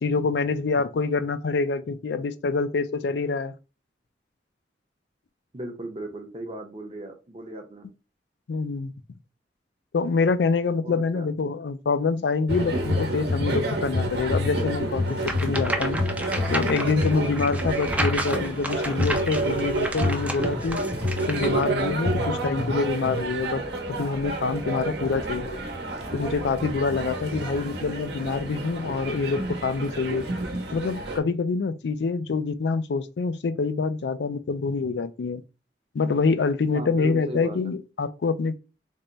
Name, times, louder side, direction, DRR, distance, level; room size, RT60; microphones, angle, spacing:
voice 1, 0.0-3.5 8.5-8.9 9.9-16.0 16.5-20.8 21.3-23.6 23.9-25.6 26.1-30.3 30.7-35.4 35.9-38.6, left 4 dB, 75° left, 0.4 m, -26 dB
voice 2, 5.5-7.9 10.8-11.3 22.1-22.5 25.0-25.1 36.7-37.6, right 1 dB, 35° right, 0.7 m, -37 dB
sound 1, 12.5-31.2, equal, 70° right, 0.9 m, -28 dB
sound 2, 15.2-21.7, right 1 dB, 10° right, 0.4 m, -32 dB
3.5 x 2.2 x 3.9 m
head